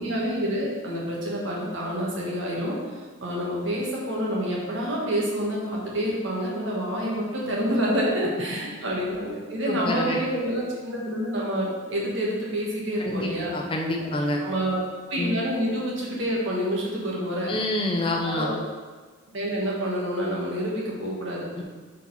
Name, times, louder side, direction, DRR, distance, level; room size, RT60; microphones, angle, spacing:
voice 1, 0.0-2.8 3.2-13.5 14.0-14.1 14.4-14.8 15.1-17.5 18.2-18.6 19.3-21.6, equal, 70° right, -4 dB, 1.5 m, -28 dB
voice 2, 9.7-10.2 13.0-14.4 15.2-15.4 17.5-18.5 21.6-21.7, left 1 dB, 25° left, 1 dB, 0.6 m, -27 dB
4.6 x 4.2 x 5.5 m, 1.4 s
head